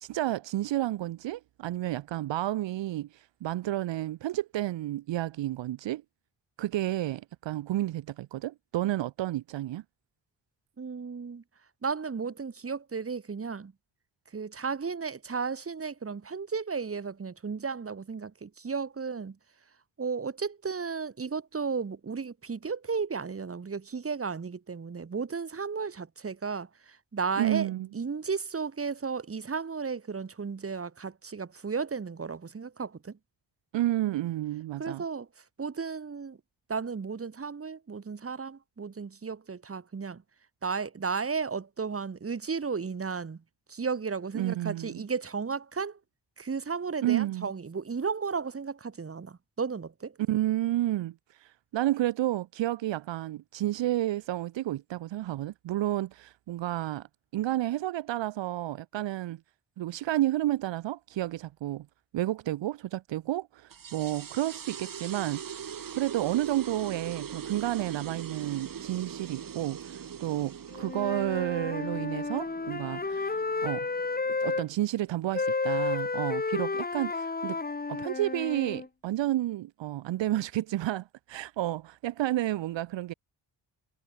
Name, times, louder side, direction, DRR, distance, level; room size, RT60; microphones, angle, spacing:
voice 1, 0.0-6.0 6.6-9.8 27.4-27.9 33.7-35.0 44.3-45.0 47.0-47.5 50.3-57.1 57.3-59.4 59.8-61.9 62.1-65.4 65.9-73.9 74.4-77.6 77.9-83.1, right 14 dB, 85° right, 0.9 m, -31 dB
voice 2, 10.8-11.4 11.8-13.7 14.3-19.4 20.0-33.2 34.8-35.3 35.6-36.4 36.7-40.2 40.6-43.4 43.7-46.0 46.4-50.2, right 5 dB, 30° right, 7.1 m, -34 dB
sound 1, 63.7-74.7, right 8 dB, 50° right, 4.7 m, -42 dB
Wind instrument woodwind instrument, 70.7-74.7 75.3-78.9, left 3 dB, 20° left, 3.8 m, -32 dB
wide cardioid pair, 160°, 43 cm